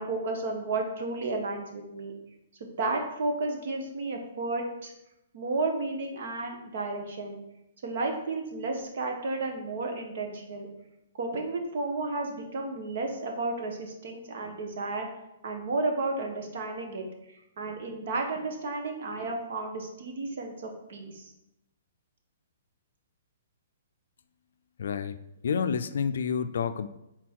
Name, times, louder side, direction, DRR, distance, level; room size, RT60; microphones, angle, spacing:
voice 1, 0.0-2.1 2.6-4.9 5.3-7.4 7.8-10.7 11.2-15.1 15.4-21.3, right 3 dB, 55° right, 3 dB, 1.3 m, -32 dB
voice 2, 24.8-25.2 25.4-26.9, left 6 dB, 65° left, 11 dB, 0.4 m, -29 dB
6.1 x 3.9 x 4.7 m, 0.89 s
hypercardioid pair, 170°, 0 cm